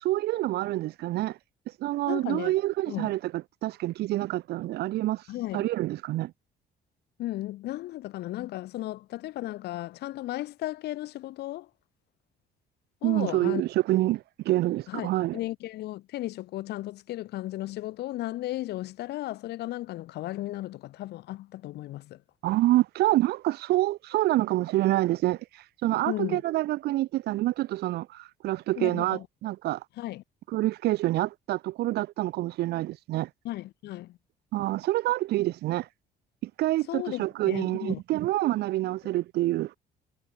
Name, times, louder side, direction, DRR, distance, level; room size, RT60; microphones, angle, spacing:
voice 1, 0.0-1.4 1.8-3.3 3.6-5.2 5.5-6.3 13.0-15.4 22.4-29.8 30.5-33.3 34.5-35.9 36.4-39.7, right 16 dB, 75° right, 1.1 m, -27 dB
voice 2, 2.1-2.5 2.9-3.1 5.3-5.6 7.2-11.7 13.0-13.6 14.9-22.2 26.1-26.4 28.8-29.3 30.0-30.2 33.4-34.2 36.9-38.0, left 16 dB, 75° left, 3.9 m, -35 dB
cardioid pair, 110°, 17 cm